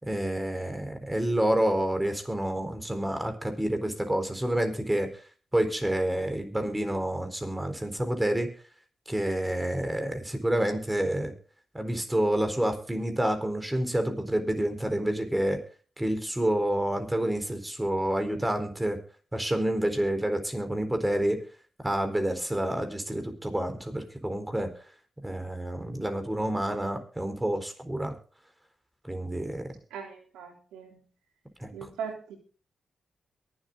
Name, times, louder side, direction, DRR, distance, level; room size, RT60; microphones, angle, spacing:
voice 1, 0.0-5.1 5.5-8.5 9.1-11.3 11.7-15.6 16.0-19.0 19.3-21.4 21.8-24.7 25.2-28.1 29.1-29.7 31.6-31.7, right 1 dB, 15° right, 6 dB, 4.1 m, -28 dB
voice 2, 29.9-31.0 31.7-32.4, right 6 dB, 90° right, 3 dB, 3.4 m, -39 dB
23.0 x 8.0 x 3.9 m, 0.38 s
supercardioid pair, 45°, 0 cm